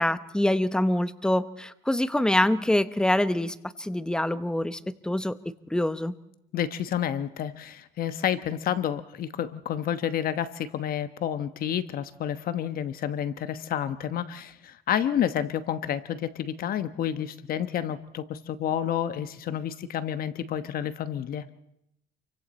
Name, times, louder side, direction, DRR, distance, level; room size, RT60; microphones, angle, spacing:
voice 1, 0.0-6.1, left 1 dB, 5° left, 13 dB, 0.9 m, -25 dB
voice 2, 6.5-21.4, left 10 dB, 60° left, 12 dB, 1.1 m, -30 dB
28.5 x 24.0 x 4.3 m, 0.81 s
cardioid pair, 110°, 17 cm